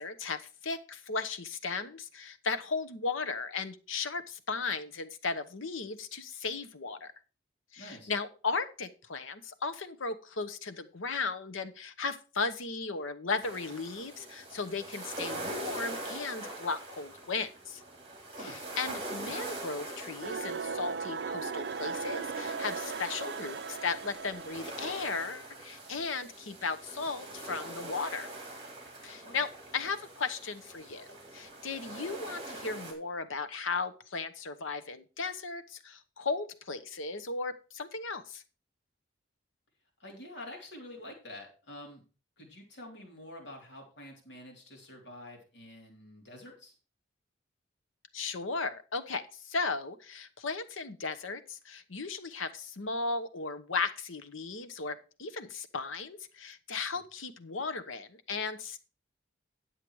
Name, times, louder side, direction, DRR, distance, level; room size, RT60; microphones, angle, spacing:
voice 1, 0.0-7.1 7.7-17.8 18.4-28.3 29.0-38.4 48.1-58.8, left 4 dB, 85° left, 12 dB, 1.0 m, -36 dB
voice 2, 7.8-8.1 18.4-18.6 29.2-29.4 31.8-32.0 40.0-42.0 42.4-46.7, left 1 dB, 65° left, 1 dB, 3.3 m, -48 dB
sound 1, 13.4-32.9, right 1 dB, 30° right, 3.0 m, -43 dB
sound 2, 20.2-25.3, right 5 dB, 55° right, 0.5 m, -38 dB
10.0 x 7.5 x 4.7 m, 0.35 s
head